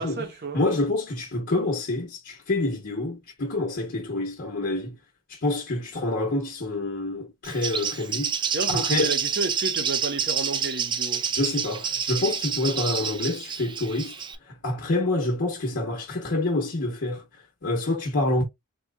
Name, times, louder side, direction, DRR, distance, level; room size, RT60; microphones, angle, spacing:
voice 1, 0.0-0.6 8.5-11.2, right 3 dB, 50° right, 0.7 m, -31 dB
voice 2, 0.5-4.9 5.3-8.3 8.7-9.1 11.3-14.1 14.5-17.2 17.6-18.4, left 2 dB, 50° left, 0.9 m, -27 dB
Bird, 7.4-14.4, right 7 dB, 20° right, 0.4 m, -28 dB
3.7 x 2.9 x 2.2 m
head